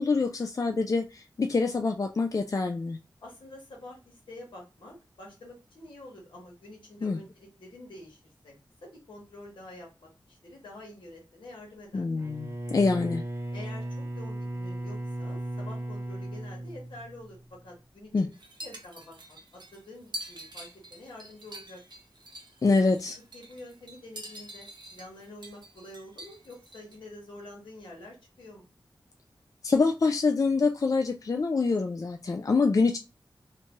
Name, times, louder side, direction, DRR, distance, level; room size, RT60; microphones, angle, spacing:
voice 1, 0.0-3.0 7.0-7.2 11.9-13.2 18.1-18.3 22.6-23.2 29.6-33.0, left 4 dB, 45° left, 5 dB, 0.3 m, -25 dB
voice 2, 3.2-8.5 8.8-12.1 13.5-18.3 18.6-21.8 23.3-28.7, left 1 dB, 80° left, -2 dB, 1.2 m, -47 dB
Bowed string instrument, 12.1-17.5, right 1 dB, 35° right, 0.8 m, -36 dB
sound 1, 18.3-27.0, right 1 dB, 60° right, 0.6 m, -45 dB
2.8 x 2.2 x 2.9 m, 0.28 s
cardioid pair, 45°, 8 cm